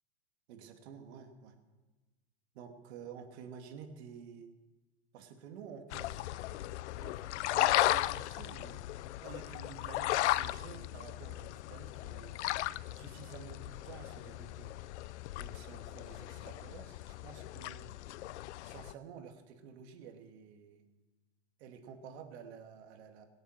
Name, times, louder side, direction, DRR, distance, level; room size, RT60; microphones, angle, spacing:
voice 1, 0.5-1.6 2.5-4.5 5.1-6.3 7.0-7.2 7.5-8.8 9.2-12.4 12.9-14.7 15.3-17.9 18.6-20.8 21.6-23.3, right 7 dB, 65° right, 5 dB, 2.4 m, -50 dB
sound 1, 5.9-18.9, left 15 dB, 75° left, 0.5 m, -36 dB
23.5 x 7.9 x 6.6 m, 1.2 s
hypercardioid pair, 115°, 34 cm